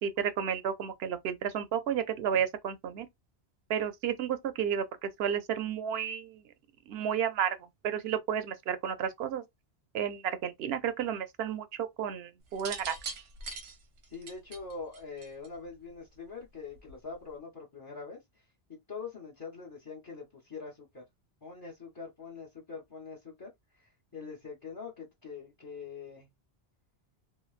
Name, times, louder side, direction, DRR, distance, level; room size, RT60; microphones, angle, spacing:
voice 1, 0.0-3.1 3.7-6.4 6.9-7.6 7.8-9.4 9.9-11.7 12.0-13.0, right 8 dB, 70° right, 0.8 m, -32 dB
sound 1, 12.5-15.7 16.8-17.1, right 4 dB, 85° right, 1.1 m, -42 dB
voice 2, 14.1-18.4 18.7-21.0 21.4-26.3, left 5 dB, 25° left, 0.7 m, -44 dB
3.2 x 2.7 x 2.3 m
omnidirectional pair, 1.1 m